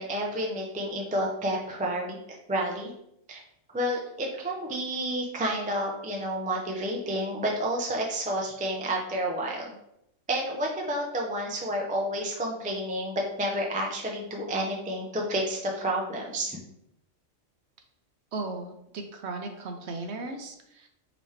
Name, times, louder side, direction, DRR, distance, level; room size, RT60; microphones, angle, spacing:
voice 1, 0.0-2.9 3.3-3.4 3.7-9.7 10.3-16.6, right 1 dB, 15° right, -1 dB, 0.3 m, -30 dB
voice 2, 18.3-20.9, right 3 dB, 65° right, 5 dB, 0.8 m, -36 dB
5.0 x 3.0 x 3.2 m, 0.79 s
omnidirectional pair, 1.4 m